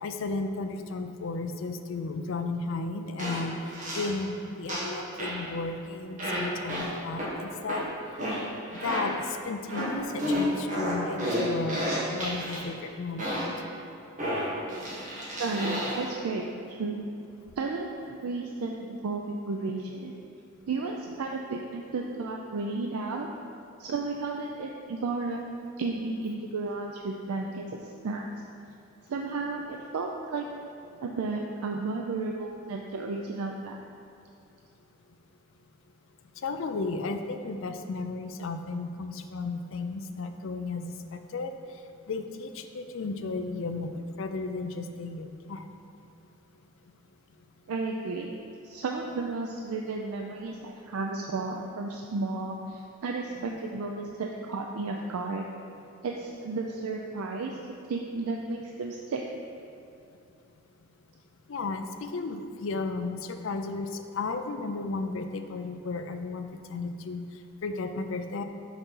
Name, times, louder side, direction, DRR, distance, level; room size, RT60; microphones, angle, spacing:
voice 1, 0.0-3.5 3.9-7.9 8.8-13.3 36.4-41.5 42.1-45.7 61.5-67.2 67.6-68.4, left 3 dB, 65° left, 7 dB, 0.4 m, -34 dB
sound 1, 3.2-3.4 3.7-4.1 4.7-4.9 5.2-5.4 6.2-6.4 6.7-6.8 7.2-7.3 7.7-7.8 8.2-8.4 8.7-9.0 9.7-9.9 10.2-12.6 13.2-13.5 14.2-16.0, equal, 35° right, 1.2 m, -31 dB
voice 2, 15.4-17.1 17.6-20.1 20.7-23.3 23.8-25.4 25.8-28.3 29.1-30.5 31.0-33.8 47.7-48.4 48.6-55.5 56.0-57.6 57.9-59.2, right 3 dB, 85° right, 1 dB, 0.4 m, -33 dB
5.9 x 4.1 x 5.4 m, 2.7 s
head